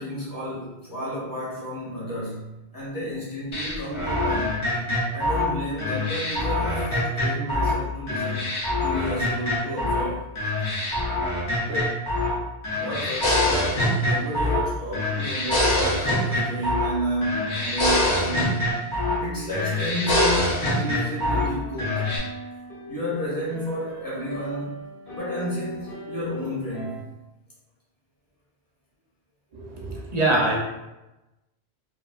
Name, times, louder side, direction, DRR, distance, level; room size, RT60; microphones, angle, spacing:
voice 1, 0.0-4.6 5.1-8.5 8.8-10.2 11.6-12.1 12.7-18.7 19.2-22.1 22.9-24.7 25.2-27.1, equal, 20° left, -8 dB, 0.9 m, -31 dB
sound 1, 3.5-7.8 8.1-10.1 10.4-12.4 12.6-14.7 14.9-17.0 17.2-19.2 19.5-21.5 21.8-22.2, left 1 dB, 45° left, 0.4 m, -24 dB
sound 2, 19.2-27.0, left 1 dB, 60° left, 0.9 m, -39 dB
voice 2, 29.5-30.6, right 2 dB, 50° right, -4 dB, 0.5 m, -24 dB
2.5 x 2.2 x 2.3 m, 0.99 s
omnidirectional pair, 1.1 m